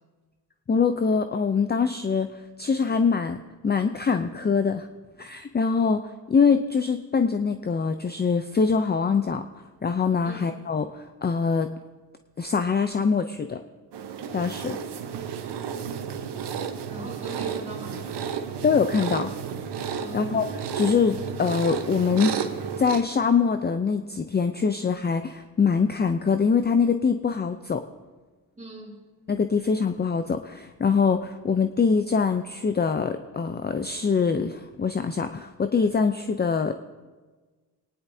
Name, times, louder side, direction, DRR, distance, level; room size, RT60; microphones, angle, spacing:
voice 1, 0.7-3.4 3.6-4.9 5.2-9.4 9.8-11.7 12.4-13.6 14.3-14.8 18.6-19.3 20.1-20.4 20.7-22.3 22.8-27.8 29.3-36.7, left 5 dB, 25° left, 8 dB, 0.5 m, -24 dB
sound 1, 13.9-23.0, right 7 dB, 70° right, 1.1 m, -32 dB
voice 2, 16.9-18.3 20.0-20.3 28.6-29.0, right 1 dB, 15° right, -1 dB, 3.6 m, -41 dB
25.5 x 10.5 x 2.8 m, 1.3 s
cardioid pair, 70°, 42 cm